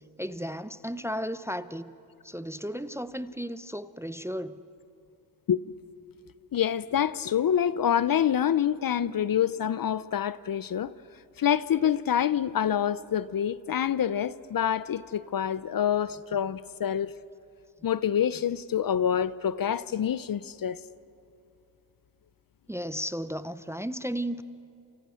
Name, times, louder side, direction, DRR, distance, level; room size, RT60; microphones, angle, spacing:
voice 1, 0.2-1.9 2.2-4.6 22.7-24.4, equal, 5° right, 0.6 m, -34 dB
voice 2, 6.5-10.9 11.4-17.1 17.8-20.8, left 9 dB, 45° left, 0.7 m, -26 dB
29.5 x 27.5 x 6.4 m
cardioid pair, 85°, 47 cm